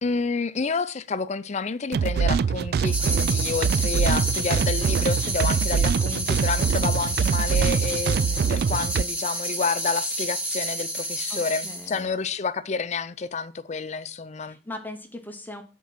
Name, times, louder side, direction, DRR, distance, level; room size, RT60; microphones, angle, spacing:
voice 1, 0.0-14.6, left 4 dB, 40° left, 0.5 m, -29 dB
sound 1, 1.9-9.0, right 6 dB, 60° right, 0.3 m, -24 dB
sound 2, 2.8-12.0, right 1 dB, 10° right, 1.8 m, -30 dB
voice 2, 11.3-12.2 14.4-15.6, left 1 dB, 10° left, 0.9 m, -39 dB
8.7 x 4.6 x 5.8 m
head